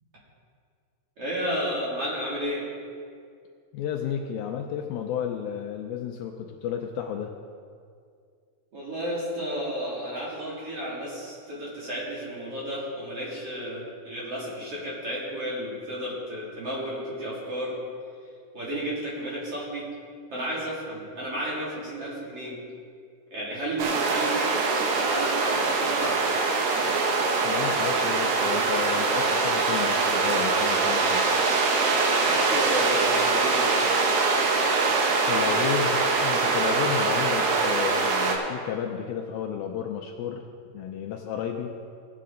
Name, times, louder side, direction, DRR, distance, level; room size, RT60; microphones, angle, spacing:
voice 1, 1.2-2.7 8.7-17.7 18.5-19.9 20.3-22.6 23.3-26.2 32.2-33.7, equal, 40° right, -6 dB, 3.1 m, -32 dB
voice 2, 3.7-7.3 27.4-31.3 35.3-40.4 40.7-41.8, left 8 dB, 80° left, 3 dB, 2.3 m, -32 dB
sound 1, 23.8-38.4, right 4 dB, 90° right, 3.3 m, -23 dB
18.0 x 8.5 x 3.8 m, 2.2 s
omnidirectional pair, 4.7 m